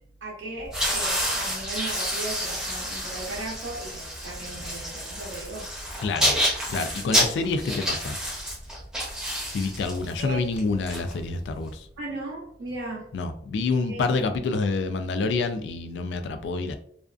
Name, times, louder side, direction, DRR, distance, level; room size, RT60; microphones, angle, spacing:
voice 1, 0.2-5.7 10.2-10.4 12.0-13.1 13.9-14.1, right 2 dB, 80° right, -3 dB, 0.7 m, -36 dB
sound 1, 0.6-11.7, equal, 5° right, 0.6 m, -29 dB
voice 2, 6.0-6.4 6.7-8.2 9.5-11.9 13.1-16.8, left 3 dB, 70° left, 8 dB, 0.3 m, -27 dB
2.4 x 2.3 x 2.3 m, 0.65 s
head